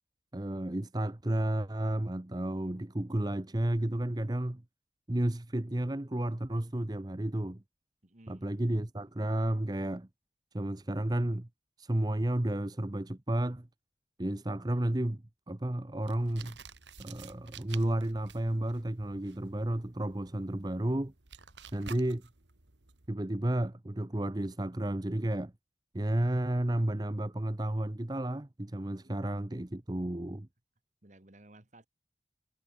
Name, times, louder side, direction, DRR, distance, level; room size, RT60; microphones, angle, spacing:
voice 1, 0.3-4.6 5.1-7.6 8.3-10.1 10.5-11.5 11.8-13.7 14.2-15.2 15.5-16.6 17.0-21.1 21.7-22.3 23.1-25.5 25.9-30.5, right 1 dB, 20° right, 0.8 m, -32 dB
voice 2, 8.0-8.5 31.0-31.9, right 1 dB, 40° right, 1.8 m, -57 dB
sound 1, 16.0-23.1, right 6 dB, 85° right, 2.3 m, -52 dB
head